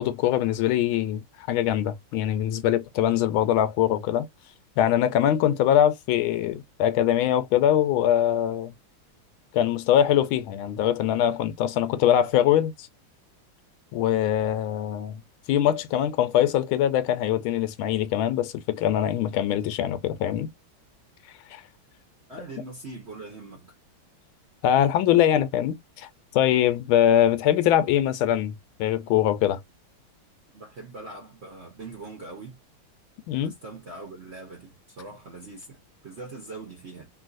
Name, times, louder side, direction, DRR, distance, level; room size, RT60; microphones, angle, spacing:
voice 1, 0.0-4.3 4.8-8.7 9.5-12.9 13.9-15.2 15.5-20.5 21.5-21.6 24.6-29.6 33.3-33.5, left 11 dB, 80° left, 1.3 m, -23 dB
voice 2, 22.3-23.7 30.5-32.6 33.4-37.1, right 3 dB, 55° right, 0.7 m, -42 dB
3.0 x 2.7 x 2.4 m
omnidirectional pair, 2.3 m